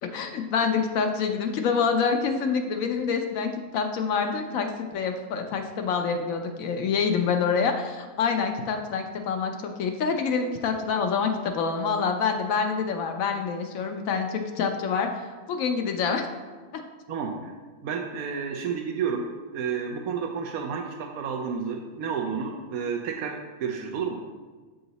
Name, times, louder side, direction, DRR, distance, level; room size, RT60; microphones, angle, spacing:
voice 1, 0.0-16.3 16.7-16.8, left 5 dB, 75° left, 4 dB, 1.0 m, -26 dB
voice 2, 17.1-17.5 17.8-19.2 19.5-24.2, right 6 dB, 85° right, 2 dB, 1.0 m, -31 dB
6.9 x 3.8 x 4.0 m, 1.3 s
omnidirectional pair, 1.4 m